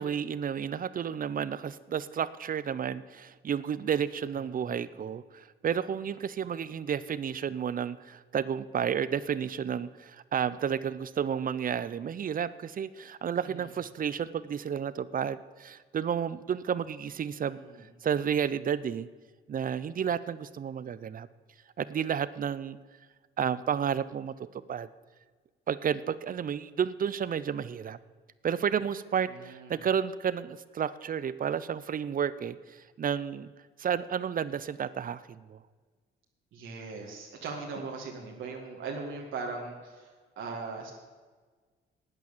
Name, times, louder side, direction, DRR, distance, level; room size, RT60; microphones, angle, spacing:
voice 1, 0.0-17.6 18.0-19.1 19.5-21.3 21.8-22.8 23.4-24.9 25.7-28.0 28.4-33.5 33.8-35.6, right 8 dB, 45° right, 16 dB, 0.7 m, -31 dB
voice 2, 4.5-4.9 13.4-13.7 17.5-17.8 29.3-29.8 36.5-40.1 40.4-40.9, right 4 dB, 75° right, -1 dB, 2.1 m, -39 dB
12.0 x 9.1 x 7.4 m, 1.4 s
cardioid pair, 90°, 20 cm